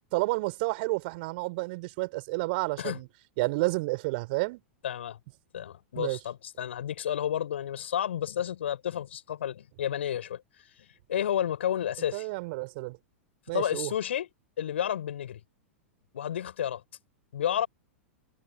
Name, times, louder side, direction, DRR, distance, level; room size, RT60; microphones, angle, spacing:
voice 1, 0.1-3.1 3.4-4.6 6.0-6.2 12.1-13.0 13.5-13.9, right 25 dB, 50° right, 4.8 m, -30 dB
voice 2, 4.8-5.2 5.5-10.4 11.1-12.3 13.5-14.3 14.6-15.4 16.1-16.8 17.3-17.7, left 10 dB, 65° left, 7.1 m, -31 dB
figure-of-eight pair, 95°, 7 cm